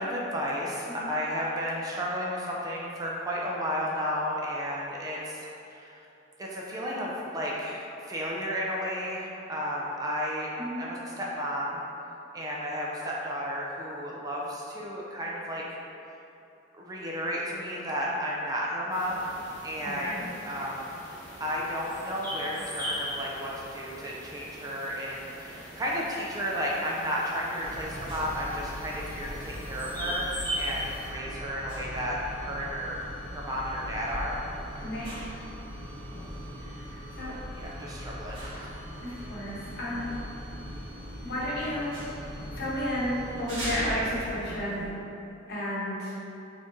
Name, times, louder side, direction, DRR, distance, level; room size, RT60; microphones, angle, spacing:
voice 1, 0.0-6.0 6.4-10.5 10.8-11.8 12.3-15.6 16.8-19.3 19.6-20.9 21.4-30.3 30.6-34.4 37.3-38.7, equal, 20° right, -4 dB, 0.3 m, -33 dB
voice 2, 10.6-10.9 19.8-20.2 34.8-35.1 36.6-37.3 39.0-40.1 41.2-42.0 42.5-44.9 45.5-46.1, equal, 55° left, -8 dB, 0.9 m, -32 dB
sound 1, 18.9-31.1, equal, 10° left, 0.8 m, -40 dB
sound 2, 27.6-44.9, equal, 75° right, 1.3 m, -39 dB
4.0 x 3.0 x 2.6 m, 2.8 s
head